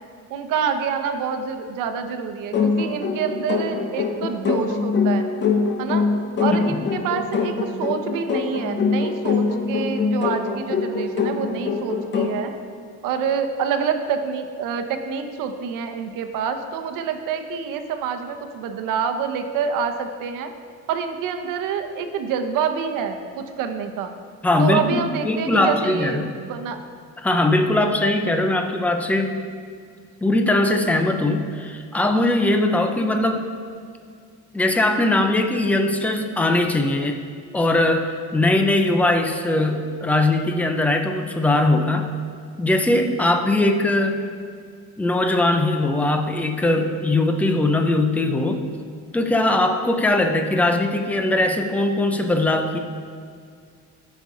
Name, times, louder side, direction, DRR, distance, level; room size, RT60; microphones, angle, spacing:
voice 1, 0.3-5.3 5.8-6.0 6.4-12.5 13.0-20.5 20.9-24.1 24.6-26.8, right 6 dB, 80° right, 6 dB, 0.9 m, -27 dB
sound 1, 2.5-12.5, left 4 dB, 35° left, 0.7 m, -23 dB
voice 2, 6.5-6.9 24.4-26.3 27.2-29.5 30.2-33.5 34.5-37.2 37.5-42.1 42.6-44.2 45.0-48.7 49.1-52.8, left 2 dB, 5° left, 5 dB, 0.4 m, -20 dB
14.5 x 5.3 x 3.8 m, 2.1 s
cardioid pair, 170°, 32 cm